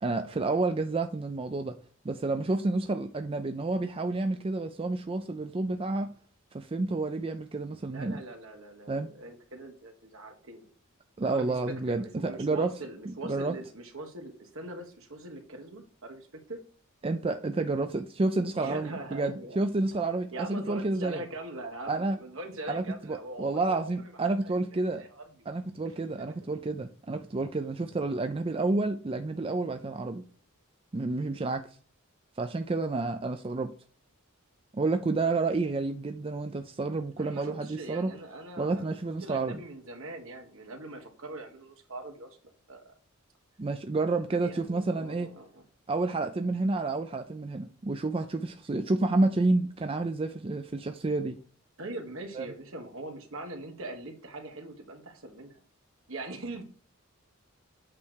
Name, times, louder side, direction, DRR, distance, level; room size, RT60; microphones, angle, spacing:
voice 1, 0.0-1.8 2.0-6.1 6.5-8.2 8.9-9.1 11.2-12.7 13.1-13.6 17.0-21.2 21.9-22.2 22.7-25.0 25.5-30.2 30.9-31.7 32.4-33.7 34.7-38.1 38.6-39.6 43.6-45.3 45.9-51.4 52.4-52.5, right 3 dB, 25° right, 0.4 m, -30 dB
voice 2, 7.9-10.7 11.2-16.6 18.5-19.6 20.3-24.2 24.4-25.5 25.9-26.3 37.2-42.3 42.7-42.9 44.3-45.6 46.1-46.2 51.8-55.6 56.1-56.6, right 2 dB, 65° right, 1.7 m, -42 dB
8.5 x 3.3 x 6.3 m
head